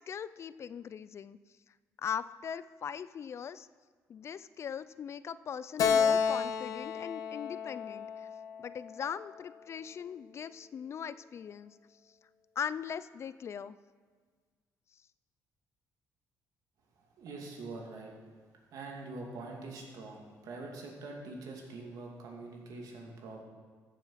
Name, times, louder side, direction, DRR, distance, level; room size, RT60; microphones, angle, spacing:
voice 1, 0.0-1.4 2.0-3.7 4.1-8.3 8.6-11.8 12.6-13.8, left 7 dB, 45° left, 16 dB, 0.4 m, -40 dB
Keyboard (musical), 5.8-9.2, left 6 dB, 65° left, 1.0 m, -31 dB
voice 2, 17.2-18.1 18.7-23.4, right 3 dB, 70° right, 0 dB, 2.7 m, -44 dB
14.5 x 7.1 x 5.7 m, 1.5 s
cardioid pair, 100°, 6 cm